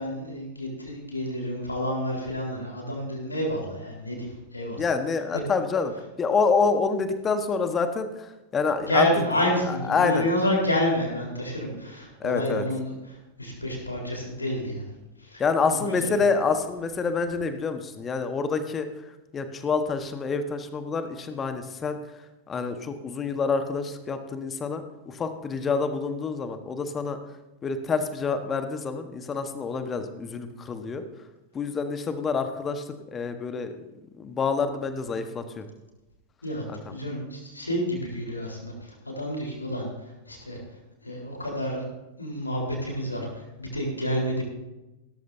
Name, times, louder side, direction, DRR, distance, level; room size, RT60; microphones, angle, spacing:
voice 1, 0.0-4.3 4.5-4.8 8.9-12.9 13.4-14.9 15.2-15.4 15.9-16.1 36.4-36.6 36.9-39.9 40.3-40.6 41.0-41.9 42.2-44.4, left 1 dB, 80° left, -1 dB, 4.0 m, -29 dB
voice 2, 4.8-5.9 6.2-9.1 9.7-10.3 12.2-12.6 15.4-22.2 22.5-27.2 27.6-31.0 31.5-33.8 34.1-35.7 36.7-36.9, left 5 dB, 20° left, 8 dB, 1.3 m, -27 dB
17.0 x 13.5 x 2.7 m, 1.0 s
figure-of-eight pair, 90°, 0 cm